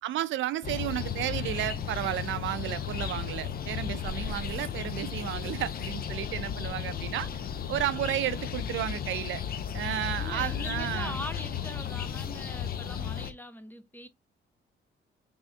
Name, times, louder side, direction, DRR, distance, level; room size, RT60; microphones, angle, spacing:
voice 1, 0.0-7.3 7.7-9.4 9.7-11.2, right 12 dB, 75° right, 0.5 m, -32 dB
sound 1, 0.6-13.3, left 8 dB, 50° left, 0.6 m, -34 dB
voice 2, 10.2-14.1, left 1 dB, 10° left, 0.6 m, -41 dB
3.4 x 3.4 x 2.4 m
cardioid pair, 90°, 20 cm